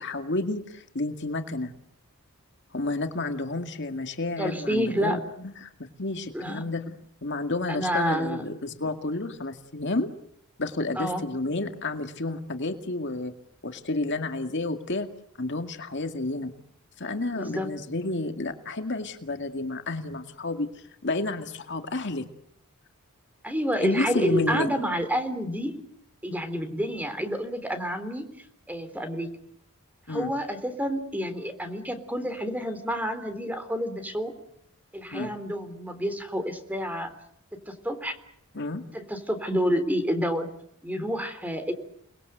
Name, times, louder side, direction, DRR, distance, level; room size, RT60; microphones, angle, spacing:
voice 1, 0.0-1.7 2.7-10.1 10.6-13.3 13.6-15.1 15.4-16.5 17.0-22.2 23.8-24.7 30.1-30.3 35.1-35.3 38.5-38.8, left 2 dB, 55° left, 6 dB, 2.1 m, -30 dB
voice 2, 4.4-5.2 6.3-6.6 7.7-8.4 11.0-11.2 17.3-17.7 23.4-25.7 26.2-28.3 28.7-29.3 30.1-34.3 34.9-37.1 37.5-38.2 38.9-40.5 40.8-41.7, equal, 5° right, 9 dB, 3.5 m, -29 dB
30.0 x 21.0 x 8.0 m, 0.72 s
head